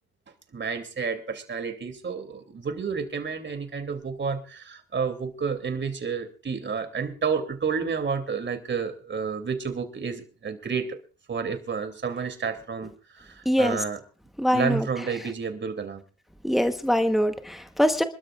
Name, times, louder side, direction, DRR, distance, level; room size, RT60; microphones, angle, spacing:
voice 1, 0.5-11.0 11.3-14.0 14.5-16.0, right 5 dB, 40° right, 8 dB, 2.9 m, -30 dB
voice 2, 13.4-13.8 14.4-14.8 16.4-18.0, equal, ahead, 8 dB, 1.1 m, -23 dB
26.5 x 12.5 x 2.5 m, 0.34 s
cardioid pair, 90°, 30 cm